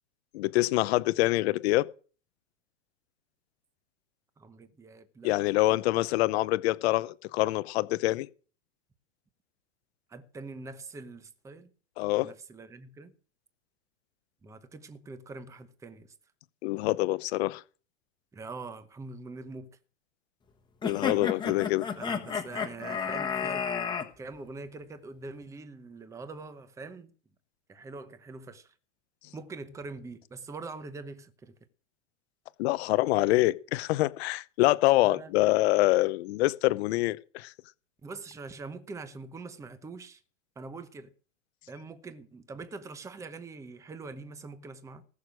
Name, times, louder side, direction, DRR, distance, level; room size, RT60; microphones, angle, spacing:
voice 1, 0.3-1.9 5.2-8.3 12.0-12.3 16.6-17.6 20.8-21.9 32.6-37.5, left 18 dB, 55° left, 0.8 m, -25 dB
voice 2, 4.4-5.3 5.9-6.1 10.1-11.7 12.2-13.1 14.4-16.1 18.3-19.7 22.0-23.7 24.2-27.1 27.7-28.7 29.3-31.6 35.0-35.5 38.0-40.2 40.6-41.1 41.7-45.0, right 3 dB, 10° right, 0.9 m, -43 dB
sound 1, 20.8-24.1, left 6 dB, 10° left, 1.3 m, -32 dB
19.0 x 6.7 x 6.3 m
supercardioid pair, 155°, 38 cm